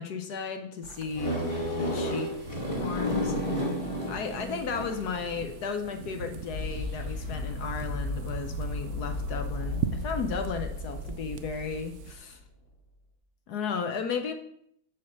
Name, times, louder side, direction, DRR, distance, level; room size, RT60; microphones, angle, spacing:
voice 1, 0.0-1.4 1.7-2.3 2.8-3.6 4.1-12.4 13.5-14.3, left 5 dB, 65° left, 6 dB, 1.1 m, -34 dB
sound 1, 0.8-12.2, right 9 dB, 85° right, 0.8 m, -41 dB
sound 2, 1.1-5.2, equal, 20° left, 1.5 m, -31 dB
sound 3, 4.4-12.4, left 2 dB, 35° left, 1.4 m, -36 dB
7.0 x 4.6 x 6.4 m, 0.71 s
omnidirectional pair, 2.1 m